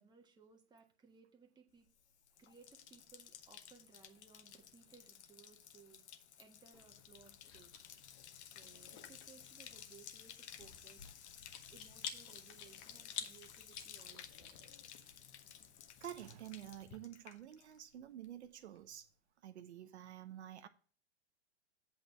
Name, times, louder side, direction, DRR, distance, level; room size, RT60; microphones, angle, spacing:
voice 1, 0.0-1.9 2.4-7.7 8.5-11.1 11.7-14.8, right 6 dB, 10° right, 1.5 m, -63 dB
Bathtub (filling or washing), 1.9-18.0 18.2-18.8, left 9 dB, 75° left, 1.0 m, -56 dB
Chewing mastication, 6.7-17.0, left 8 dB, 45° left, 1.5 m, -52 dB
voice 2, 16.0-19.1 19.4-20.7, right 11 dB, 75° right, 0.8 m, -49 dB
8.3 x 4.3 x 6.8 m
hypercardioid pair, 125°, 34 cm